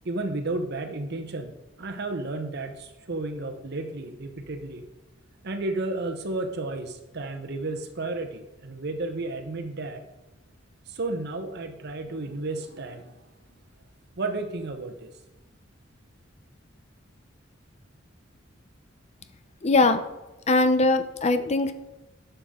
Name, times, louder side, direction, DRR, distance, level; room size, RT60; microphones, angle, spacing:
voice 1, 0.0-4.9 5.4-10.0 10.9-13.1 14.2-15.1, right 2 dB, 55° right, 6 dB, 0.9 m, -32 dB
voice 2, 19.6-20.0 20.5-21.7, left 3 dB, 30° left, 10 dB, 0.6 m, -21 dB
11.0 x 6.8 x 3.7 m, 1.1 s
head